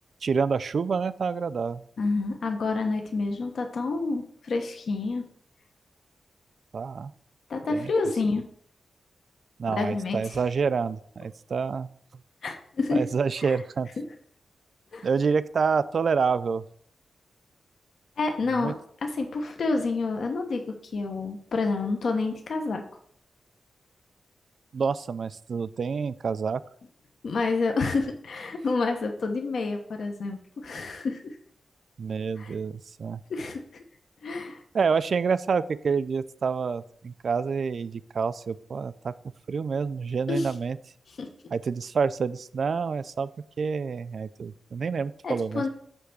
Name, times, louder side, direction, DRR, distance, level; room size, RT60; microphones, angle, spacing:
voice 1, 0.2-1.8 6.7-7.1 7.7-7.9 9.6-11.9 12.9-13.9 15.0-16.6 18.6-18.7 24.7-26.6 32.0-33.2 34.7-39.1 39.5-40.8 41.5-43.3 43.6-45.7, right 5 dB, 50° right, 15 dB, 0.4 m, -27 dB
voice 2, 2.0-5.2 7.5-8.5 9.7-10.2 12.4-13.0 13.4-13.6 14.9-15.1 18.2-18.8 19.0-22.8 27.2-31.4 32.4-32.5 33.3-33.6 34.2-34.6 40.3-40.5 41.2-41.3 45.2-45.7, left 3 dB, 55° left, 4 dB, 1.0 m, -28 dB
9.7 x 3.4 x 6.7 m, 0.63 s
wide cardioid pair, 165°, 0 cm